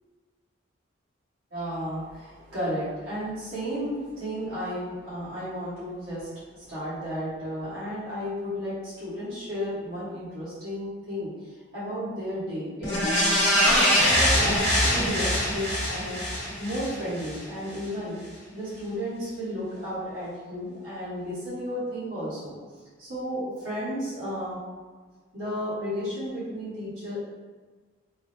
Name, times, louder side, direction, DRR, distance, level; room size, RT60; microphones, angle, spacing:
voice 1, 1.5-13.2 13.6-16.2 16.6-18.2 18.5-22.6 23.0-24.6 25.3-27.2, equal, 85° right, -12 dB, 1.3 m, -33 dB
sound 1, 12.8-17.4 17.8-17.9, equal, 55° left, 0.9 m, -23 dB
3.7 x 2.0 x 2.6 m, 1.4 s
head